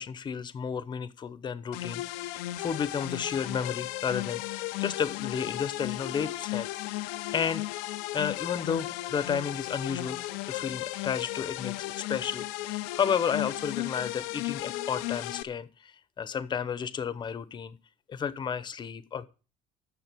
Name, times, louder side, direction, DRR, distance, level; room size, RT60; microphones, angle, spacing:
voice 1, 0.0-6.7 7.3-7.8 8.1-17.8 18.1-19.2, left 7 dB, 25° left, 0.9 m, -32 dB
sound 1, 1.7-15.4, left 17 dB, 90° left, 0.8 m, -35 dB
9.2 x 6.8 x 8.4 m
cardioid pair, 145°, 17 cm